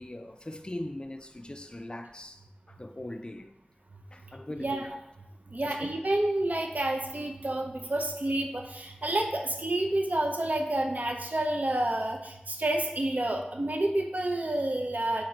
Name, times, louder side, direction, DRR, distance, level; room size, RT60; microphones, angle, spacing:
voice 1, 0.0-3.5 4.1-4.9 5.6-5.8, left 1 dB, 30° left, 0.3 m, -40 dB
voice 2, 4.6-4.9 5.5-15.2, right 1 dB, 55° right, 0.5 m, -29 dB
4.3 x 2.5 x 3.8 m
wide cardioid pair, 45°, 3 cm